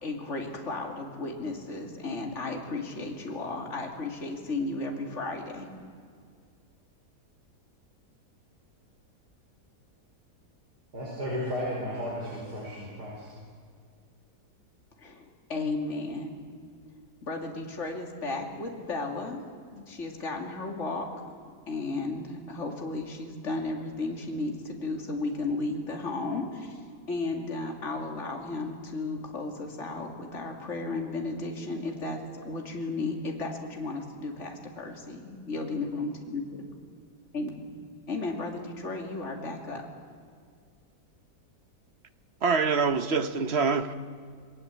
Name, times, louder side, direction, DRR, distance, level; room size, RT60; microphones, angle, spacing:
voice 1, 0.0-5.7 15.0-16.4 17.2-19.4 19.7-21.1 21.7-26.8 27.1-36.7 37.3-37.7 38.1-39.8, left 3 dB, 45° left, 2.8 m, -34 dB
voice 2, 10.9-13.3, equal, 75° right, 5.6 m, -34 dB
voice 3, 42.4-43.9, right 5 dB, 45° right, 1.1 m, -25 dB
27.5 x 20.0 x 8.3 m
omnidirectional pair, 1.8 m